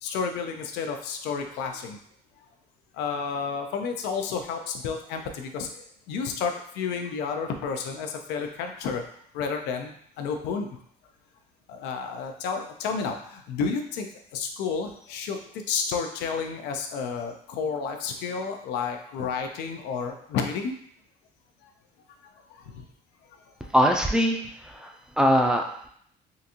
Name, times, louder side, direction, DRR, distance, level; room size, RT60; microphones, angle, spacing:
voice 1, 0.0-2.0 2.9-9.0 9.3-10.7 11.7-14.1 14.3-20.7 21.6-21.7 22.5-22.8 23.3-23.7, left 5 dB, 90° left, 4 dB, 0.5 m, -31 dB
voice 2, 23.7-25.9, equal, 5° right, 2 dB, 0.4 m, -23 dB
3.7 x 2.5 x 2.8 m, 0.64 s
cardioid pair, 110°, 17 cm